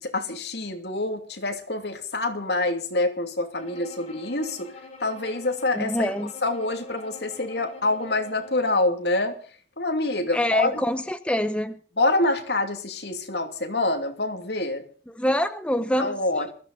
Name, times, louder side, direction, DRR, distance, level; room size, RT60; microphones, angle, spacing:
voice 1, 0.0-4.7 5.0-6.1 6.4-9.4 9.8-10.8 12.0-14.8 16.0-16.5, left 2 dB, 65° left, 6 dB, 2.7 m, -26 dB
Bowed string instrument, 3.6-9.0, left 3 dB, 40° left, 3.7 m, -44 dB
voice 2, 5.7-6.3 10.3-11.8 15.1-16.4, left 1 dB, 5° left, 10 dB, 0.8 m, -25 dB
21.0 x 14.5 x 4.1 m, 0.41 s
head